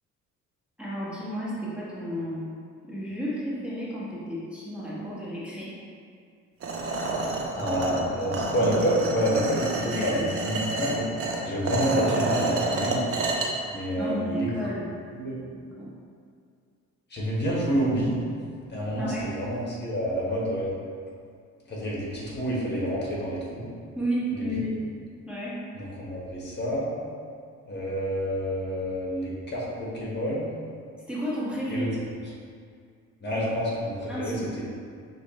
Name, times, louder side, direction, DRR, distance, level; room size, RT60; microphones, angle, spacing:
voice 1, 0.8-2.5 2.8-5.7 9.8-10.4 14.0-14.9 15.5-15.9 19.0-19.3 23.9-24.7 25.2-25.6 31.1-31.9 33.3-33.5 34.1-34.5, equal, 5° right, -9 dB, 1.3 m, -32 dB
sound 1, 6.6-13.5, right 2 dB, 50° right, 0.7 m, -29 dB
voice 2, 7.5-11.0 11.4-13.1 13.7-14.5 15.1-15.4 17.1-18.2 18.6-20.7 21.7-23.7 24.3-24.7 25.7-26.9 27.7-30.5 31.7-31.9 33.2-34.3, equal, 35° left, -5 dB, 1.3 m, -28 dB
6.2 x 2.4 x 3.1 m, 2.2 s
cardioid pair, 90°, 30 cm